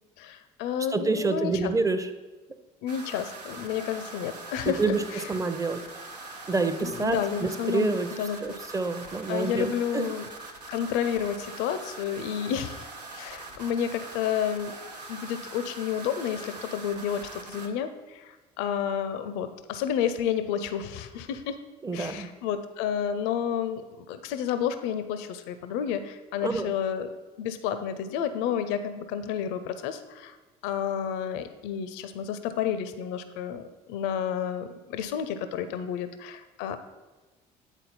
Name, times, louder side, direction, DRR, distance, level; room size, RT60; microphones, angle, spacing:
voice 1, 0.2-1.7 2.8-4.8 6.8-8.4 9.3-10.3 10.7-12.9 13.1-14.8 15.1-21.6 21.9-27.1 27.4-30.4 30.6-33.6 33.9-36.8, left 8 dB, 65° left, 10 dB, 0.5 m, -30 dB
voice 2, 0.9-2.1 4.6-5.9 6.5-8.1 8.4-10.1 21.8-22.3 26.4-26.7, right 3 dB, 15° right, 9 dB, 0.6 m, -28 dB
sound 1, 2.9-17.7, right 3 dB, 90° right, 0.6 m, -42 dB
9.0 x 4.0 x 4.1 m, 1.2 s
figure-of-eight pair, 50°, 20 cm